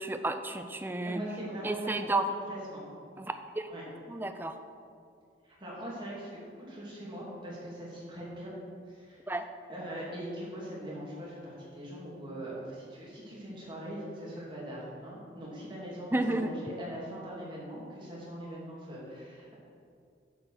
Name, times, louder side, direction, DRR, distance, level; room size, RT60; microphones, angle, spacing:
voice 1, 0.0-1.2 1.6-2.3 3.2-3.7 4.1-4.6 9.3-9.5 16.1-16.5, right 2 dB, 10° right, 8 dB, 0.5 m, -32 dB
voice 2, 1.0-2.8 3.7-3.8 5.4-8.5 8.9-9.2 9.7-19.5, equal, 25° right, -6 dB, 2.7 m, -41 dB
9.7 x 5.1 x 6.5 m, 2.3 s
head